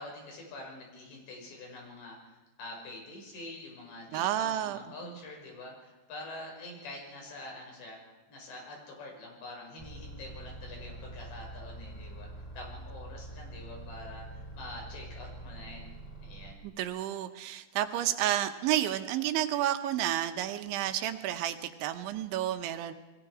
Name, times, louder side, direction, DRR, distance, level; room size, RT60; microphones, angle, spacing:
voice 1, 0.0-8.0 8.3-12.3 12.5-15.9 16.2-16.6, left 2 dB, 70° left, 0 dB, 8.0 m, -46 dB
voice 2, 4.1-4.8 5.0-5.2 16.6-22.9, right 12 dB, 85° right, 8 dB, 3.4 m, -31 dB
sound 1, 9.8-16.5, right 2 dB, 10° left, 2.0 m, -45 dB
29.5 x 21.0 x 5.0 m, 1.1 s
omnidirectional pair, 5.2 m